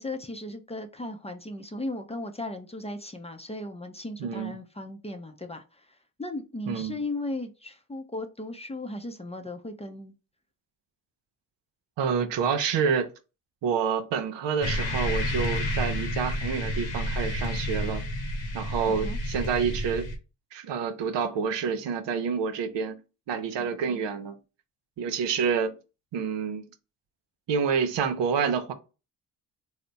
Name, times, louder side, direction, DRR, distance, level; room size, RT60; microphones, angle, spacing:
voice 1, 0.0-10.1 18.9-19.2 23.6-24.1, left 2 dB, 15° left, 0.5 m, -37 dB
voice 2, 4.2-4.5 6.7-7.0 12.0-13.1 13.6-18.0 18.5-20.1 20.5-23.0 23.3-24.4 25.0-25.7 26.1-26.7 27.5-28.7, right 6 dB, 75° right, 0.7 m, -28 dB
sound 1, 14.6-20.2, left 1 dB, 85° left, 1.0 m, -30 dB
3.3 x 2.1 x 3.9 m
supercardioid pair, 55°, 44 cm